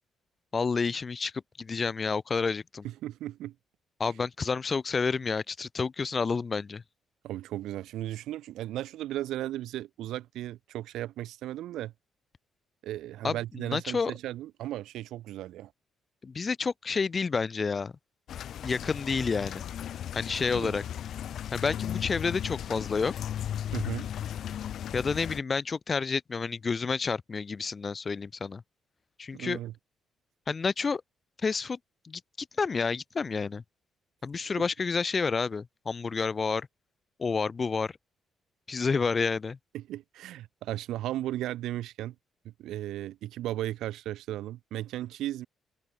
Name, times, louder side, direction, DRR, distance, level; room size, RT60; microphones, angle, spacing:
voice 1, 0.5-1.3 1.6-2.8 4.0-6.8 13.2-14.1 16.2-17.9 18.6-19.6 20.2-20.8 21.5-23.1 24.9-28.6 29.2-29.6 30.5-31.0 31.4-31.8 32.0-32.2 32.6-33.6 34.2-36.7 37.2-37.9 38.7-39.6, left 5 dB, 35° left, 0.5 m, -29 dB
voice 2, 2.8-3.5 7.2-11.9 12.8-15.7 20.5-20.7 23.7-24.1 29.3-29.7 39.7-42.1 42.6-45.5, right 14 dB, 85° right, 1.2 m, -36 dB
sound 1, 18.3-25.4, left 10 dB, 65° left, 1.0 m, -36 dB
open air
cardioid pair, 90°, 0 cm